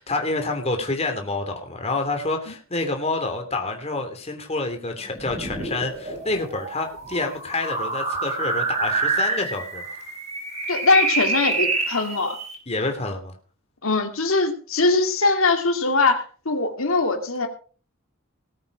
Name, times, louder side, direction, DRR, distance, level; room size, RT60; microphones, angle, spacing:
voice 1, 0.0-9.8 12.7-13.3, left 2 dB, 30° left, 4 dB, 3.0 m, -28 dB
sound 1, 5.1-12.6, right 3 dB, 35° right, 5.1 m, -27 dB
voice 2, 10.7-12.4 13.8-17.5, left 3 dB, 80° left, 5 dB, 2.4 m, -21 dB
19.0 x 8.6 x 4.9 m, 0.39 s
head